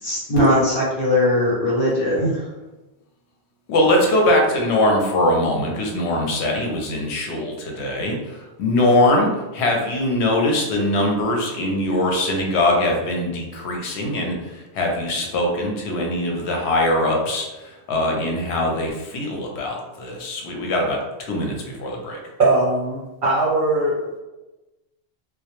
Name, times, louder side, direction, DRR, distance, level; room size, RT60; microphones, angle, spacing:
voice 1, 0.0-2.4, left 1 dB, 65° left, -7 dB, 1.2 m, -19 dB
voice 2, 3.7-22.2, left 1 dB, 85° left, 0 dB, 0.9 m, -22 dB
voice 3, 22.4-24.2, right 2 dB, 55° right, -7 dB, 0.7 m, -20 dB
2.1 x 2.0 x 2.8 m, 1.1 s
omnidirectional pair, 1.1 m